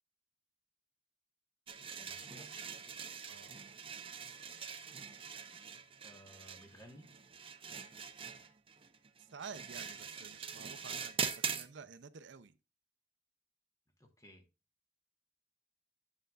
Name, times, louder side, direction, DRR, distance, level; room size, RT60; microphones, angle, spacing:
sound 1, 1.7-11.7, right 6 dB, 30° right, 0.7 m, -43 dB
voice 1, 2.0-2.5 6.0-7.1 14.0-14.4, equal, 20° left, 1.5 m, -57 dB
voice 2, 9.2-12.6, right 5 dB, 80° right, 0.6 m, -51 dB
9.1 x 6.5 x 2.4 m
head